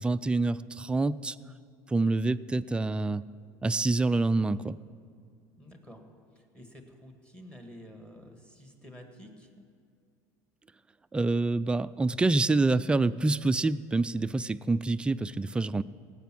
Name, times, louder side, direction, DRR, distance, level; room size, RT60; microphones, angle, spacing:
voice 1, 0.0-1.4 1.9-3.2 3.6-4.8 11.1-15.8, right 3 dB, 10° right, 13 dB, 0.3 m, -27 dB
voice 2, 5.6-6.0 6.4-9.6, equal, 10° left, 4 dB, 1.9 m, -50 dB
18.0 x 8.3 x 6.1 m, 2.2 s
supercardioid pair, 110°, 9 cm